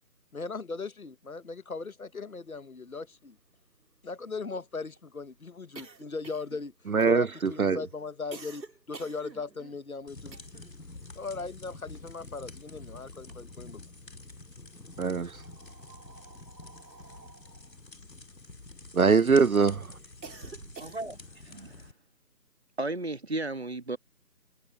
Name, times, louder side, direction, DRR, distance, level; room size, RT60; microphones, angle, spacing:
voice 1, 0.3-3.4 4.0-6.7 7.0-10.4 11.1-13.8, left 4 dB, 55° left, 1.3 m, -38 dB
sound 1, 2.6-2.7 3.0-3.1 3.4-10.8 11.1-12.7 13.0-14.0 14.7-19.2 19.6-21.4, right 4 dB, 85° right, 2.2 m, -50 dB
voice 2, 6.9-7.8 15.0-15.4 18.9-19.9, right 5 dB, 60° right, 0.6 m, -23 dB
sound 2, 10.1-21.9, left 2 dB, 80° left, 4.2 m, -48 dB
voice 3, 20.8-21.2 21.5-21.7 22.8-24.0, right 2 dB, 40° right, 1.5 m, -34 dB
figure-of-eight pair, 175°, 49 cm